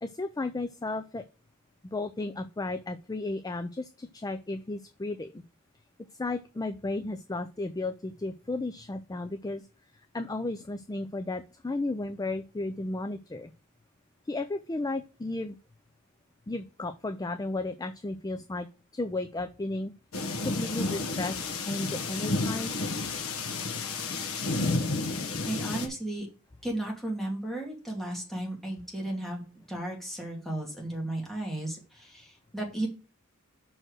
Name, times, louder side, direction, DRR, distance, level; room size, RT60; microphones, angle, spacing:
voice 1, 0.0-1.2 1.9-5.4 6.2-9.6 10.1-13.5 14.2-15.6 16.5-18.7 18.9-19.9 20.4-22.8, left 2 dB, 15° left, 10 dB, 0.4 m, -34 dB
sound 1, 20.1-25.9, left 3 dB, 80° left, 1.2 m, -31 dB
voice 2, 25.0-26.3 26.6-29.4 29.7-32.9, right 1 dB, ahead, -2 dB, 2.4 m, -34 dB
6.2 x 4.5 x 6.3 m, 0.35 s
head